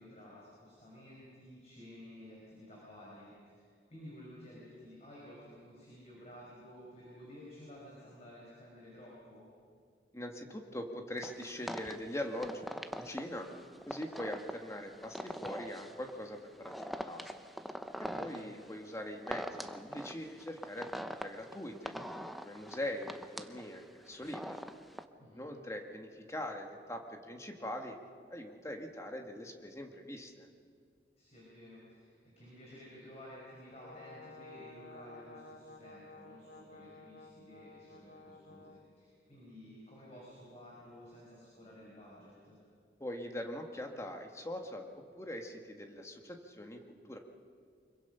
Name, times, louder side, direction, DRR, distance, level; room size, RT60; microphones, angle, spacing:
voice 1, 0.0-9.5 18.1-18.6 25.2-25.5 31.2-42.6, left 1 dB, 35° left, -5 dB, 5.3 m, -53 dB
voice 2, 10.1-13.5 13.9-17.4 18.0-21.9 22.4-24.6 25.3-28.0 28.3-30.5 43.0-47.2, left 1 dB, 15° left, 3 dB, 1.6 m, -42 dB
sound 1, 11.2-25.0, equal, ahead, 0.6 m, -43 dB
Brass instrument, 33.7-38.9, left 3 dB, 70° left, 1.8 m, -53 dB
25.0 x 23.0 x 5.6 m, 2.2 s
head